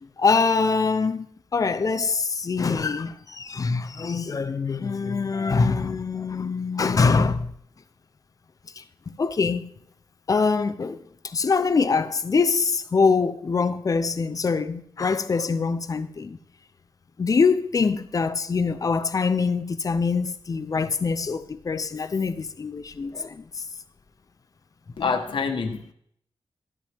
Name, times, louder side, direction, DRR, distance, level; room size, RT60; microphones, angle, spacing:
voice 1, 0.2-1.3 1.5-7.5 8.8-9.7 10.3-16.4 17.2-23.6, left 4 dB, 40° left, 0.6 m, -24 dB
voice 2, 25.0-25.9, left 5 dB, 65° left, 1.3 m, -26 dB
12.0 x 10.5 x 3.5 m
wide cardioid pair, 120°, 9 cm